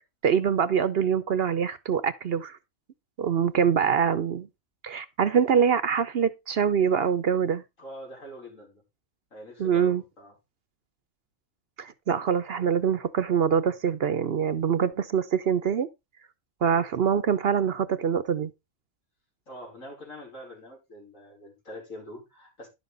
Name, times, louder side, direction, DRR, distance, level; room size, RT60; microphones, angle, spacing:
voice 1, 0.2-2.6 3.2-4.5 4.8-7.6 9.6-10.0 11.8-15.9 16.6-18.5, right 7 dB, 55° right, 0.8 m, -24 dB
voice 2, 7.8-8.8 9.3-10.4 19.5-22.7, equal, 80° left, 5.1 m, -44 dB
11.0 x 7.0 x 3.9 m
omnidirectional pair, 1.4 m